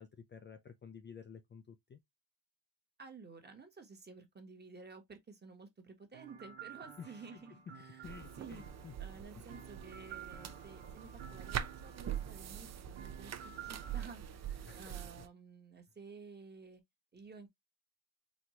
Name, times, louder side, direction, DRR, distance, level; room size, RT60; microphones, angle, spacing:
voice 1, 0.0-2.0 7.0-7.6 8.0-8.9 9.3-9.5 14.6-15.2, left 6 dB, 25° left, 0.4 m, -52 dB
voice 2, 3.0-8.6 9.0-16.8 17.1-17.5, right 4 dB, 25° right, 1.1 m, -53 dB
sound 1, 6.1-14.0, right 8 dB, 90° right, 1.0 m, -52 dB
sound 2, 8.0-15.3, right 9 dB, 40° right, 0.6 m, -44 dB
4.3 x 2.3 x 2.9 m
cardioid pair, 105°, 44 cm